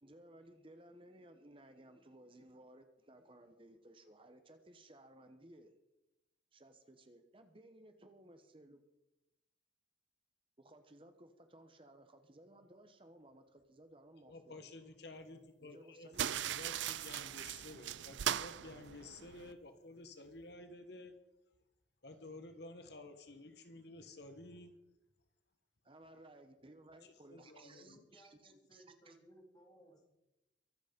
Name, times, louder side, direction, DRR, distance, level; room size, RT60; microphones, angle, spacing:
voice 1, 0.0-5.7 6.5-8.8 10.6-14.7 15.6-16.2 25.8-29.2, right 1 dB, 30° right, 8 dB, 1.0 m, -59 dB
voice 2, 14.3-21.1 22.0-24.7 27.0-28.0, left 2 dB, 55° left, 7 dB, 1.3 m, -52 dB
sound 1, 16.1-19.5, right 10 dB, 70° right, 0.4 m, -39 dB
voice 3, 27.3-30.1, equal, 20° left, 0 dB, 3.3 m, -63 dB
23.5 x 8.3 x 5.3 m, 0.96 s
head